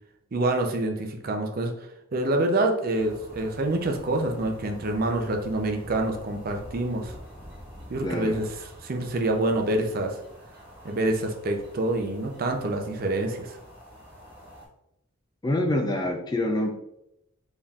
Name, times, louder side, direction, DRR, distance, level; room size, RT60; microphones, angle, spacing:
voice 1, 0.3-1.7 2.1-7.1 7.9-10.2 10.8-13.6, right 2 dB, 45° right, 4 dB, 0.5 m, -26 dB
sound 1, 3.0-14.7, equal, 10° right, 1.5 m, -46 dB
voice 2, 8.0-8.4 15.4-16.8, left 1 dB, 20° left, 4 dB, 0.3 m, -26 dB
4.1 x 3.6 x 2.4 m, 0.83 s
head